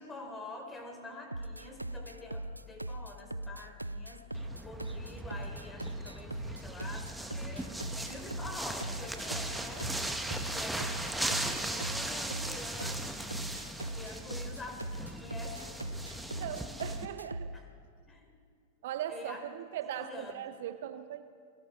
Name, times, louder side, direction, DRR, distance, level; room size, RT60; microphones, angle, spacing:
voice 1, 0.0-7.7 8.1-9.9 10.5-13.3 13.9-15.7 17.5-17.6 18.1-18.4 19.1-19.4 19.8-20.6, left 2 dB, 15° left, 3 dB, 4.5 m, -46 dB
sound 1, 1.3-17.6, right 1 dB, 85° right, 0.5 m, -40 dB
sound 2, 4.3-17.1, right 1 dB, 5° right, 1.6 m, -38 dB
voice 2, 16.3-17.6 18.8-21.2, right 11 dB, 55° right, 11 dB, 0.9 m, -39 dB
29.0 x 24.0 x 4.6 m, 2.2 s
figure-of-eight pair, 90°, 0 cm